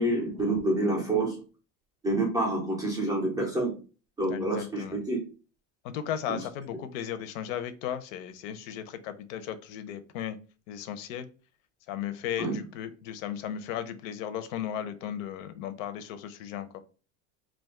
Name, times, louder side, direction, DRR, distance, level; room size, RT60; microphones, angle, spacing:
voice 1, 0.0-1.4 2.0-3.7 4.2-5.2 6.3-6.4 12.4-12.6, right 2 dB, 10° right, -3 dB, 0.3 m, -27 dB
voice 2, 4.3-5.0 5.8-10.4 10.7-11.3 11.9-16.7, left 10 dB, 85° left, 11 dB, 0.6 m, -36 dB
2.5 x 2.3 x 3.5 m, 0.36 s
cardioid pair, 175°, 39 cm